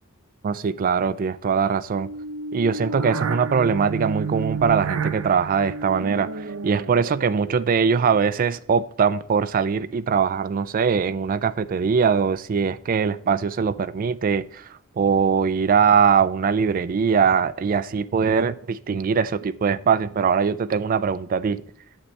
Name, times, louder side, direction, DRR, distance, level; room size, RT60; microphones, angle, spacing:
voice 1, 0.4-2.1 2.5-14.6 15.0-21.6, right 6 dB, 40° right, 0.3 m, -22 dB
sound 1, 1.9-8.3, right 4 dB, 85° right, 0.6 m, -31 dB
8.7 x 6.7 x 3.2 m
head